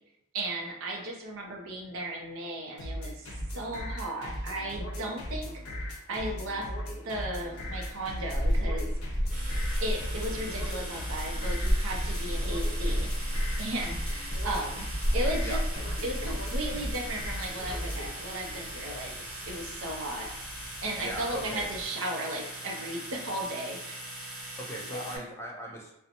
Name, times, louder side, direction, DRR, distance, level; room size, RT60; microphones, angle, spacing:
voice 1, 0.3-5.5 6.1-6.7 7.0-8.9 9.8-14.8 15.1-15.6 16.0-19.1 19.5-20.3 20.8-24.0 24.9-25.2, right 1 dB, 70° right, 1 dB, 0.5 m, -35 dB
sound 1, 2.8-18.1, equal, 85° left, 0.6 m, -38 dB
Child speech kid speaking, 7.4-21.8, equal, 40° left, 1.1 m, -33 dB
sound 2, 9.3-25.2, right 1 dB, 40° right, 0.8 m, -41 dB
voice 2, 21.0-21.7 24.6-25.9, equal, 10° left, -2 dB, 0.4 m, -38 dB
2.5 x 2.0 x 2.8 m, 0.82 s
head